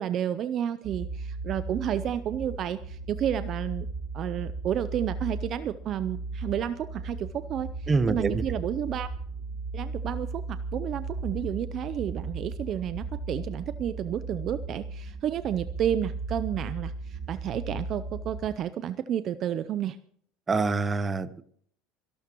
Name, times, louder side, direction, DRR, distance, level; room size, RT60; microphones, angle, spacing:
voice 1, 0.0-3.9 4.1-9.1 9.7-20.0, right 10 dB, 45° right, 13 dB, 0.6 m, -31 dB
sound 1, 0.8-18.6, right 3 dB, 60° right, 5.8 m, -36 dB
voice 2, 7.9-8.4 20.5-21.4, right 4 dB, 20° right, 13 dB, 1.0 m, -25 dB
26.5 x 12.0 x 3.0 m, 0.62 s
supercardioid pair, 125°, 0 cm